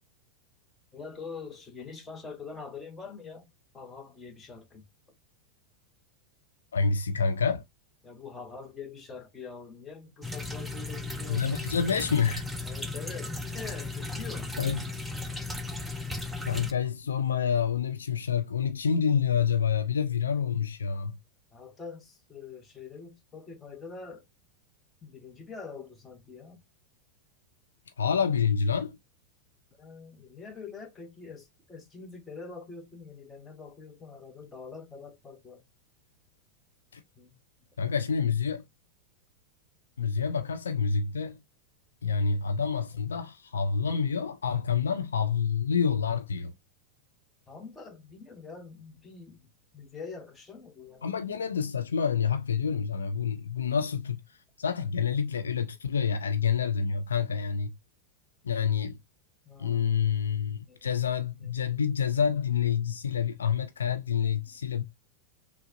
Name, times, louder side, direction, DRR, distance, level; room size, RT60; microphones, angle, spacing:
voice 1, 0.9-3.5 3.7-4.8 8.0-11.5 12.6-14.5 21.5-24.3 25.0-26.6 29.8-35.6 37.1-37.4 47.5-51.4 59.4-60.0 60.7-61.0 61.4-61.5 61.8-61.9 62.9-63.0 64.4-64.8, left 5 dB, 15° left, 1.1 m, -45 dB
voice 2, 6.7-7.6 11.3-12.4 14.6-14.8 16.5-21.2 28.0-29.0 36.9-37.0 37.8-38.6 40.0-41.4 42.0-46.5 51.0-54.2 54.6-57.7 58.4-59.0 59.6-64.8, left 6 dB, 70° left, 0.5 m, -28 dB
sound 1, 10.2-16.7, left 3 dB, 5° right, 0.6 m, -36 dB
6.1 x 2.4 x 2.6 m
figure-of-eight pair, 90°, 0 cm